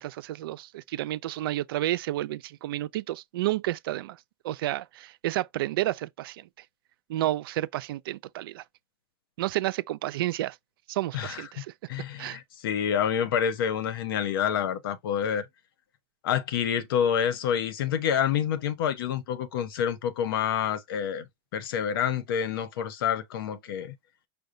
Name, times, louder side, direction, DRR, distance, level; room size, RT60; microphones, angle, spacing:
voice 1, 0.0-4.2 4.4-6.5 7.1-8.6 9.4-10.6 10.9-11.7 12.2-12.4, right 15 dB, 75° right, 0.4 m, -31 dB
voice 2, 11.9-15.5 16.2-21.3 21.5-23.9, left 8 dB, 75° left, 0.8 m, -28 dB
5.3 x 2.2 x 3.7 m
supercardioid pair, 120°, 12 cm